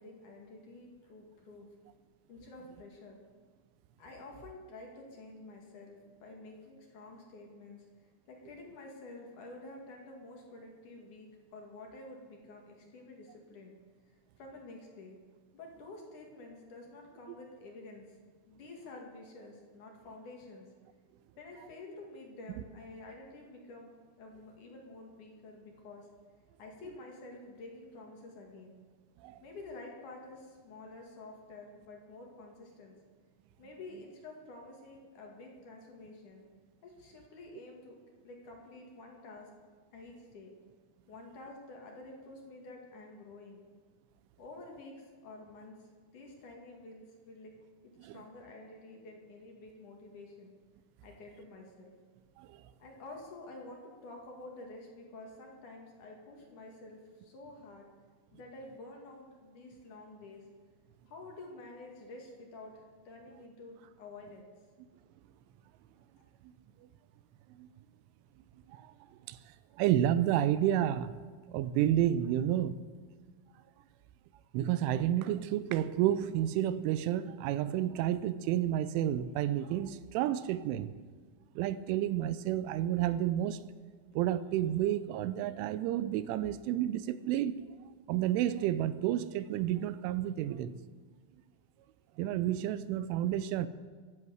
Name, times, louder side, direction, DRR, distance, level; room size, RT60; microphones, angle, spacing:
voice 1, 0.0-1.7 2.3-3.2 4.0-13.8 14.1-15.2 15.5-18.2 18.5-20.7 21.4-23.9 24.2-26.1 26.6-28.8 29.4-33.0 33.6-36.5 36.8-39.5 39.9-40.5 41.1-43.6 44.4-47.5 47.8-50.5 51.0-51.9 52.8-57.9 58.3-60.4 61.1-64.5, left 2 dB, 50° left, 2.9 m, -50 dB
voice 2, 69.8-71.1 71.5-72.8 74.5-80.9 81.6-83.6 84.2-87.6 88.1-90.7 92.2-93.7, right 12 dB, 85° right, 3.0 m, -30 dB
23.5 x 7.8 x 8.0 m
omnidirectional pair, 5.7 m